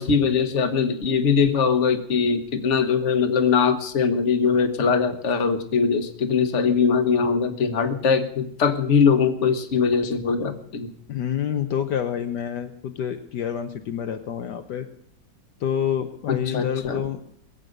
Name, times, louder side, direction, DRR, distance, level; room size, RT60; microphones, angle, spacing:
voice 1, 0.0-10.9 16.3-17.1, left 5 dB, 45° left, 8 dB, 1.4 m, -21 dB
voice 2, 11.1-14.9 15.6-17.2, left 9 dB, 70° left, 6 dB, 1.4 m, -28 dB
22.0 x 8.1 x 6.6 m, 0.68 s
omnidirectional pair, 2.0 m